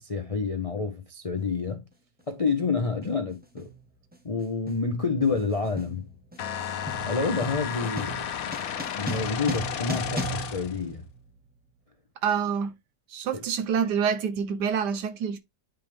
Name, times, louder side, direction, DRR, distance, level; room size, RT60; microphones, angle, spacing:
voice 1, 0.0-1.8 2.3-3.7 4.2-6.1 7.0-8.6 9.0-11.0, left 4 dB, 65° left, 0.3 m, -28 dB
sound 1, 1.4-1.5 2.5-2.7 3.0-11.6, right 2 dB, 10° right, 0.5 m, -38 dB
sound 2, 6.4-10.8, left 9 dB, 85° left, 1.5 m, -33 dB
voice 2, 12.2-12.7 13.1-15.4, right 7 dB, 65° right, 1.3 m, -27 dB
9.1 x 3.4 x 3.5 m
omnidirectional pair, 2.0 m